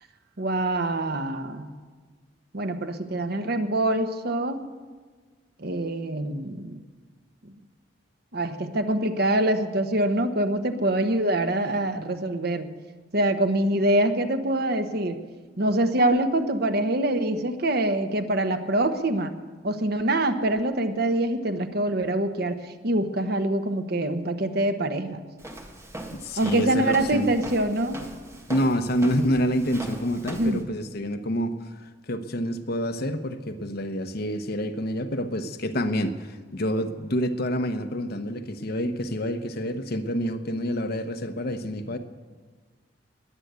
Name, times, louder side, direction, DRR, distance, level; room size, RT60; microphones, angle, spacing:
voice 1, 0.4-1.7 2.5-4.6 5.6-6.8 8.3-12.7 13.1-15.2 15.6-19.3 19.6-25.2 26.4-28.0 30.4-30.6, right 1 dB, 55° right, 8 dB, 1.2 m, -25 dB
Walk footsteps, 25.4-30.6, right 1 dB, 15° right, 1.7 m, -40 dB
voice 2, 26.1-27.3 28.5-31.6 32.1-42.0, equal, 55° left, 7 dB, 1.1 m, -27 dB
20.5 x 7.9 x 8.3 m, 1.4 s
head